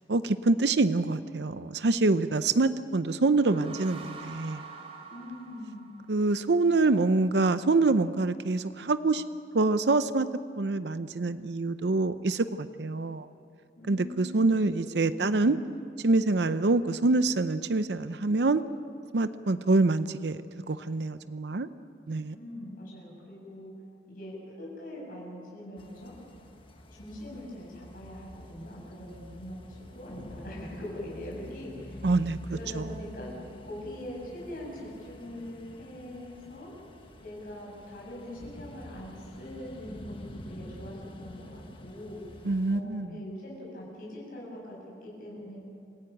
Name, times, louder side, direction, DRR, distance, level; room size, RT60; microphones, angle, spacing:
voice 1, 0.1-4.6 6.1-9.2 9.5-10.3 10.6-13.3 13.9-15.6 16.0-18.6 19.1-20.4 20.7-21.7 22.1-22.3 32.0-32.4 32.7-32.9 42.4-43.2, right 3 dB, 70° right, 12 dB, 0.6 m, -25 dB
sound 1, 3.1-6.6, right 5 dB, 35° right, 3.3 m, -46 dB
voice 2, 5.1-5.8 13.8-14.8 15.2-15.5 22.3-23.7 24.1-26.1 26.9-32.0 32.5-33.3 33.6-36.7 37.2-42.2 42.7-44.8 45.0-45.6, left 1 dB, 50° left, -4 dB, 7.9 m, -42 dB
sound 2, 25.8-42.8, left 1 dB, 30° left, 1.5 m, -47 dB
27.0 x 15.5 x 9.1 m, 2.5 s
head